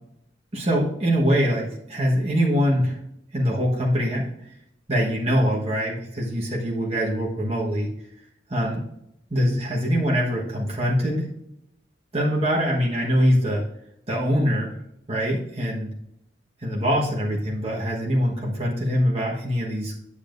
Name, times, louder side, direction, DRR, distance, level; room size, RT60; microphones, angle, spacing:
voice 1, 0.5-3.0 3.3-4.3 4.9-7.9 8.5-8.8 9.3-11.3 12.1-13.6 14.1-14.7 15.1-15.9 16.6-20.0, equal, 35° right, -3 dB, 1.4 m, -23 dB
10.0 x 7.0 x 2.6 m, 0.78 s
head